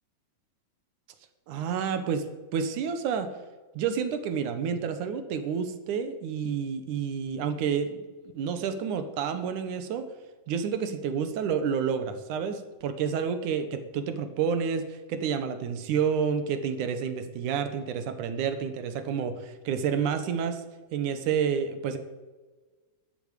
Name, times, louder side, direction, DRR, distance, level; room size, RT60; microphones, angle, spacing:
voice 1, 1.5-2.2 2.5-3.3 3.8-8.0 8.3-10.0 10.5-20.6 20.9-22.0, right 7 dB, 70° right, 9 dB, 2.5 m, -29 dB
12.5 x 8.5 x 8.2 m, 1.3 s
omnidirectional pair, 3.9 m